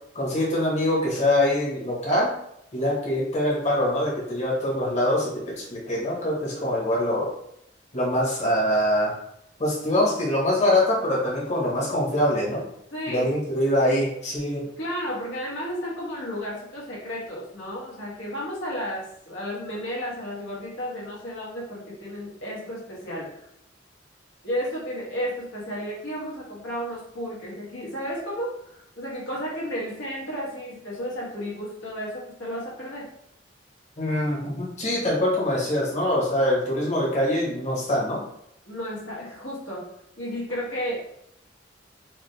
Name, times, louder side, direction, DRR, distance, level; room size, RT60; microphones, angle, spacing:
voice 1, 0.1-2.3 2.7-7.3 7.9-9.2 9.6-12.6 13.1-14.7 34.0-38.2, left 1 dB, 40° left, -5 dB, 1.2 m, -24 dB
voice 2, 12.9-13.3 14.8-23.5 24.4-33.1 38.6-39.9 40.2-41.0, equal, 85° left, -5 dB, 1.5 m, -33 dB
4.9 x 2.3 x 3.3 m, 0.77 s
head